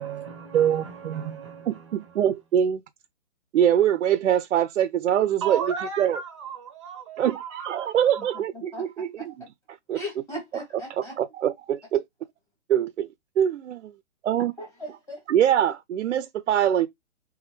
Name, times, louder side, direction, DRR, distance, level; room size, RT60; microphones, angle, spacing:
voice 1, 0.0-2.2 5.4-8.4, right 7 dB, 25° right, 0.6 m, -36 dB
voice 2, 0.5-1.4 1.7-2.8 3.5-5.6 6.0-6.2 7.2-9.3 9.9-10.0 11.0-12.0 12.7-13.1 13.4-13.9 14.2-14.5 15.3-16.9, right 10 dB, 80° right, 0.5 m, -23 dB
voice 3, 9.9-11.1 14.6-15.2, left 1 dB, 10° left, 1.1 m, -37 dB
3.5 x 3.0 x 3.2 m
hypercardioid pair, 150°, 37 cm